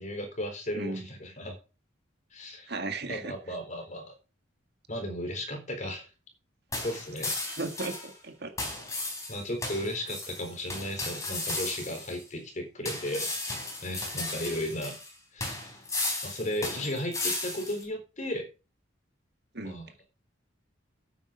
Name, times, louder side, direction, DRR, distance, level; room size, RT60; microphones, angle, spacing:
voice 1, 0.0-1.5 2.3-2.7 3.1-4.1 4.9-6.1 6.8-7.4 9.3-13.6 13.8-15.0 15.3-15.7 16.2-18.5 19.6-19.9, left 1 dB, 40° left, 4.1 m, -35 dB
voice 2, 0.7-1.1 2.7-3.3 7.6-8.5 19.5-19.8, right 2 dB, 55° right, 1.9 m, -35 dB
sound 1, 6.7-8.1 8.6-12.2 12.9-15.1 15.4-17.8, left 2 dB, 15° left, 3.9 m, -35 dB
9.8 x 8.9 x 5.2 m
head